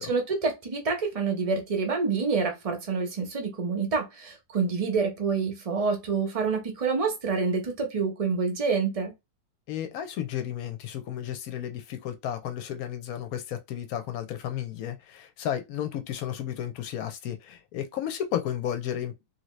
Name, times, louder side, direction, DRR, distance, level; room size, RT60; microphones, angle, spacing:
voice 1, 0.0-9.1, right 4 dB, 45° right, 0.4 m, -27 dB
voice 2, 9.7-19.1, left 10 dB, 65° left, 1.0 m, -33 dB
2.8 x 2.7 x 3.1 m
omnidirectional pair, 1.9 m